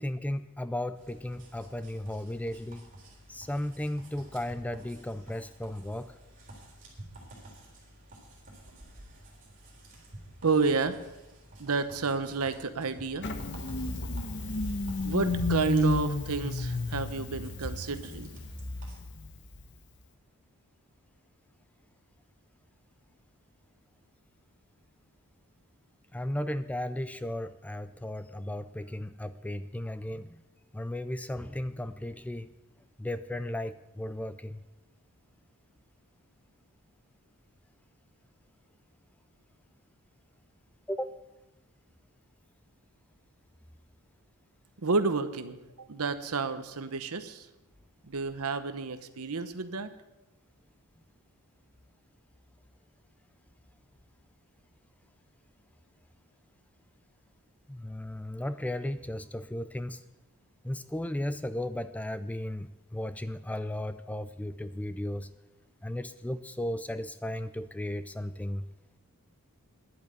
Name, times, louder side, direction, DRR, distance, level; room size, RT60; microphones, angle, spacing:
voice 1, 0.0-2.9 3.3-6.1 26.1-30.4 30.7-32.5 33.0-34.6 40.9-41.2 57.7-60.0 60.6-65.3 65.8-68.6, left 1 dB, 5° left, 12 dB, 0.3 m, -35 dB
sound 1, 1.0-19.0, right 1 dB, 35° right, 3.8 m, -52 dB
voice 2, 10.4-11.0 11.6-13.3 15.0-18.3 44.8-47.5 48.1-49.9, right 4 dB, 70° right, 11 dB, 0.9 m, -30 dB
Engine starting, 13.2-19.7, left 2 dB, 55° left, 1.1 m, -32 dB
10.5 x 8.7 x 7.9 m, 1.0 s
head